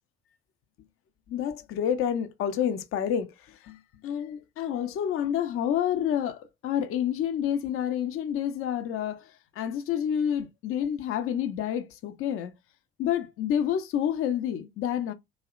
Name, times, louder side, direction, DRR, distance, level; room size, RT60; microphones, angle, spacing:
voice 1, 1.3-12.5 13.0-15.1, left 9 dB, 40° left, 0.5 m, -29 dB
2.7 x 2.0 x 2.4 m
figure-of-eight pair, 50°, 33 cm